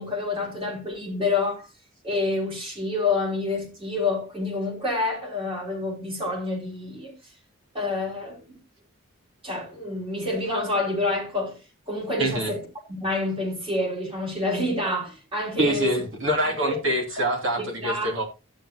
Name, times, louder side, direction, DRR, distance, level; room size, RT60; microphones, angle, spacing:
voice 1, 0.0-1.7 2.0-7.1 7.7-8.4 9.4-11.6 11.9-12.6 12.9-15.9 16.6-16.7 17.6-18.2, left 2 dB, 25° right, 3.5 m, -27 dB
voice 2, 12.2-12.5 15.6-18.2, right 1 dB, 60° right, 3.6 m, -25 dB
11.5 x 9.2 x 3.0 m
head